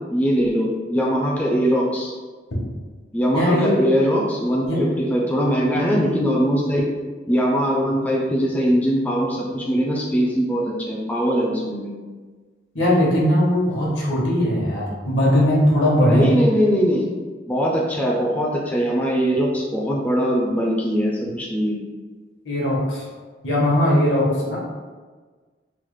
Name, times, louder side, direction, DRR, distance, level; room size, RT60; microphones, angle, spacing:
voice 1, 0.1-2.1 3.1-6.8 7.3-11.9 16.0-17.0 17.5-21.8, equal, 10° left, -3 dB, 0.3 m, -21 dB
voice 2, 3.3-3.7 4.7-4.8 12.7-16.4 22.4-23.0 23.4-24.6, left 1 dB, 75° left, -4 dB, 0.9 m, -19 dB
3.1 x 2.1 x 3.1 m, 1.4 s
head